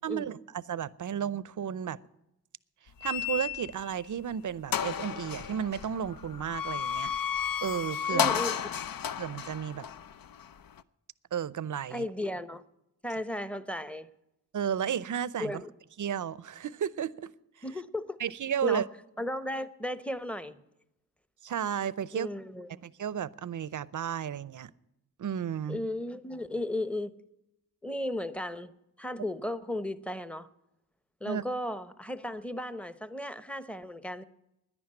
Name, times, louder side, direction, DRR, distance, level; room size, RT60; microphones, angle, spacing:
voice 1, 0.0-2.0 3.0-7.1 7.6-8.4 9.2-9.8 11.3-12.0 14.5-15.6 16.0-17.3 18.2-18.9 21.4-22.3 22.8-24.7 25.2-25.8 31.2-31.4, right 8 dB, 50° right, 0.6 m, -33 dB
sound 1, 3.0-3.9 4.3-4.4 4.7-10.8, left 8 dB, 60° left, 0.6 m, -33 dB
voice 2, 8.1-8.6 11.9-12.6 13.0-14.1 15.4-15.7 17.6-18.2 18.6-18.8 19.2-20.6 22.1-22.7 25.7-27.1 27.8-28.7 29.0-30.5 31.2-34.2, left 1 dB, 5° left, 0.9 m, -35 dB
10.5 x 10.0 x 8.8 m
cardioid pair, 45°, 39 cm